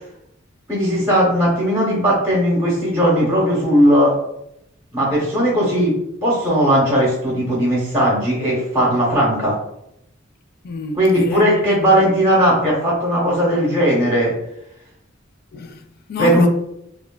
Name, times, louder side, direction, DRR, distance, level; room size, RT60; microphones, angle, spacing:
voice 1, 0.7-4.1 4.9-5.9 6.2-9.5 11.0-14.3 16.2-16.5, equal, 10° right, 0.9 m, -17 dB
voice 2, 10.6-12.1 15.5-16.5, left 3 dB, 50° left, 0.3 m, -28 dB
3.1 x 2.2 x 2.2 m
head